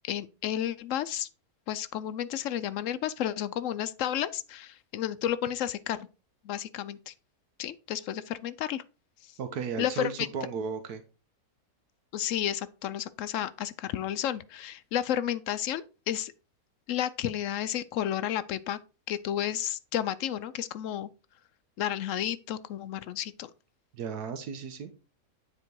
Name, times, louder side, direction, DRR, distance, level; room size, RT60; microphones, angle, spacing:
voice 1, 0.0-1.3 1.7-6.1 6.4-7.1 7.6-8.8 9.8-10.3 12.1-16.3 16.9-18.8 19.1-21.1 21.8-23.5, left 11 dB, 70° left, 0.8 m, -32 dB
voice 2, 9.4-11.0 23.9-24.9, right 6 dB, 85° right, 1.5 m, -35 dB
9.8 x 4.4 x 4.6 m
omnidirectional pair, 1.6 m